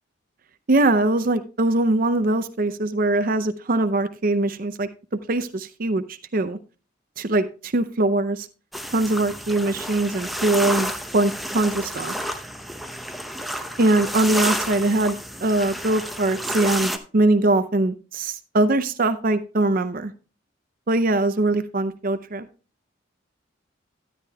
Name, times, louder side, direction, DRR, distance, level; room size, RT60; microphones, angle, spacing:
voice 1, 0.7-4.9 5.3-6.6 7.2-8.5 8.9-12.1 13.8-20.1 20.9-22.5, right 2 dB, 45° right, 10 dB, 0.5 m, -22 dB
sound 1, 8.7-17.0, equal, ahead, 0.7 m, -30 dB
13.0 x 10.0 x 2.3 m, 0.33 s
head